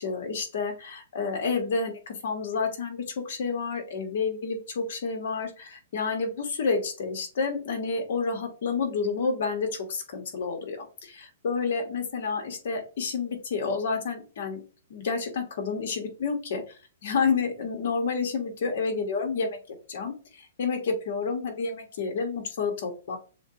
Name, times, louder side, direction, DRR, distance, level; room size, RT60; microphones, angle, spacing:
voice 1, 0.0-14.6 14.9-16.6 17.0-19.6 19.9-23.2, left 4 dB, 55° left, 4 dB, 1.4 m, -29 dB
6.9 x 2.3 x 2.9 m, 0.36 s
hypercardioid pair, 170°, 0 cm